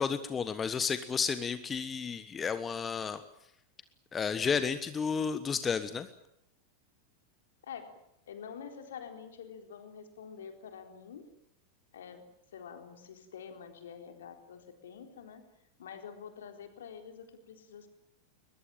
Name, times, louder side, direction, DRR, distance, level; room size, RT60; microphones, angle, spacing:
voice 1, 0.0-3.2 4.1-6.1, left 6 dB, 20° left, 12 dB, 1.3 m, -32 dB
voice 2, 7.6-8.0 8.3-11.3 11.9-15.4 15.8-17.9, left 7 dB, 60° left, 6 dB, 4.0 m, -47 dB
22.0 x 21.5 x 9.0 m, 0.79 s
figure-of-eight pair, 90°, 0 cm